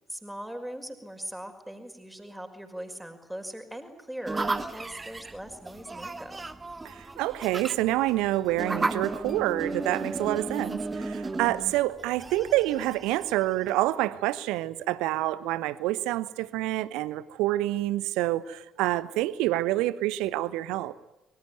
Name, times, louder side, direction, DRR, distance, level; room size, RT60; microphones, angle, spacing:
voice 1, 0.1-6.5, right 1 dB, 5° right, 5.5 m, -40 dB
sound 1, 4.2-13.8, right 3 dB, 25° right, 2.2 m, -34 dB
voice 2, 6.8-10.8 11.1-20.9, right 16 dB, 65° right, 1.1 m, -27 dB
26.5 x 23.5 x 9.4 m
figure-of-eight pair, 45°, 0 cm